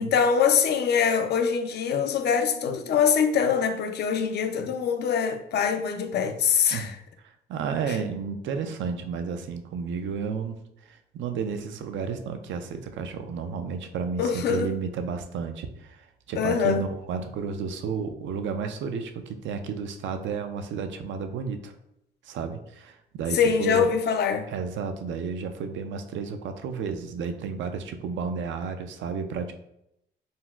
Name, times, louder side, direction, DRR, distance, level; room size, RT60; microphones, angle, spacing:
voice 1, 0.0-6.9 14.2-14.7 16.4-16.8 23.3-24.5, left 7 dB, 60° left, 0.4 m, -23 dB
voice 2, 2.3-3.0 6.7-6.9 7.2-21.7 22.2-23.9 24.5-29.5, right 5 dB, 70° right, 0.4 m, -32 dB
4.0 x 2.1 x 2.3 m
cardioid pair, 90°, 20 cm